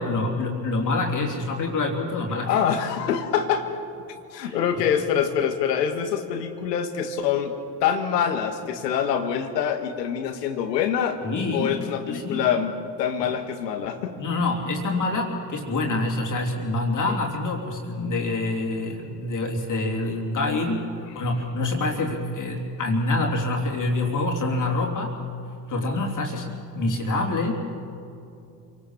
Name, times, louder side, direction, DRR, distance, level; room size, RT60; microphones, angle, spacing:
voice 1, 0.0-2.6 4.4-4.8 11.2-12.5 13.2-13.3 14.2-20.9 21.1-25.1 25.7-27.5, left 2 dB, 40° left, 0 dB, 3.1 m, -26 dB
voice 2, 2.5-3.7 4.3-7.5 7.8-11.2 11.5-12.7 13.0-14.2, left 8 dB, 80° left, 7 dB, 1.8 m, -25 dB
27.0 x 18.5 x 7.2 m, 2.5 s
hypercardioid pair, 65°, 49 cm